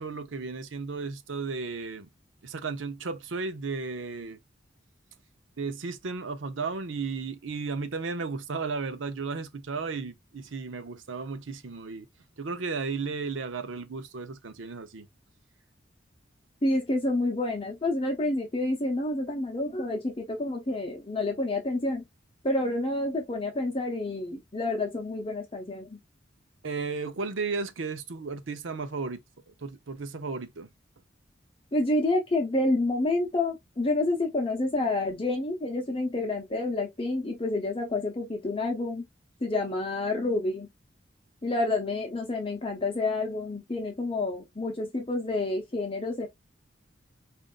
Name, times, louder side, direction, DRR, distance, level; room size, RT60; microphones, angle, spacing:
voice 1, 0.0-2.1 2.4-4.4 5.6-12.1 12.4-15.1 26.6-29.2 29.5-30.7, right 4 dB, 90° right, 0.7 m, -34 dB
voice 2, 16.6-22.0 22.4-26.0 31.7-39.1 39.4-40.7 41.4-46.3, left 2 dB, 30° left, 0.7 m, -28 dB
5.1 x 2.5 x 2.4 m
head